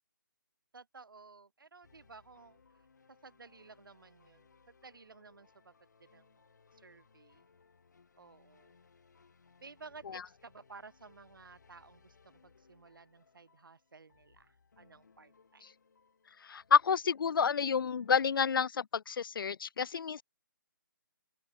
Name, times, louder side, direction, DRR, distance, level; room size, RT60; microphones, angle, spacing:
voice 1, 0.7-2.6 3.2-5.7 6.0-6.4 6.7-7.4 8.2-8.7 9.6-15.6, right 4 dB, 75° right, 5.8 m, -55 dB
sound 1, 1.8-18.4, left 5 dB, 55° left, 7.7 m, -66 dB
voice 2, 16.4-20.2, left 6 dB, 85° left, 0.4 m, -29 dB
open air
hypercardioid pair, 180°, 11 cm